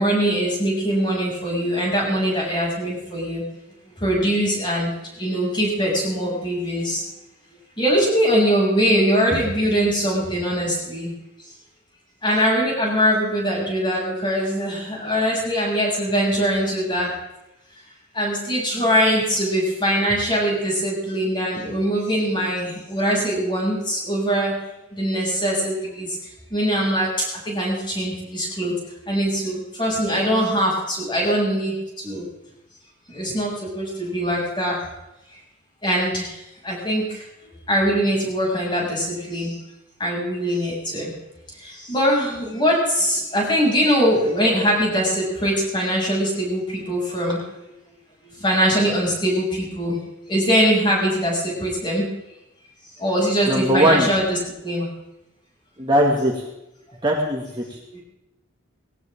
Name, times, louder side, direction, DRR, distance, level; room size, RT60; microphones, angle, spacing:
voice 1, 0.0-3.4 4.0-7.0 7.8-11.1 12.2-17.1 18.1-24.5 24.9-26.2 26.5-27.1 27.5-28.7 29.1-32.2 33.1-34.8 35.8-36.4 36.6-37.2 37.7-39.5 40.0-41.1 41.6-47.6 48.2-50.0 50.3-52.1 53.0-54.4 54.6-54.9 57.9-58.0, equal, 25° left, -3 dB, 7.0 m, -22 dB
voice 2, 53.5-54.1 55.8-56.3 57.0-57.8, equal, 25° right, -1 dB, 2.1 m, -19 dB
19.5 x 17.5 x 3.7 m, 0.91 s
head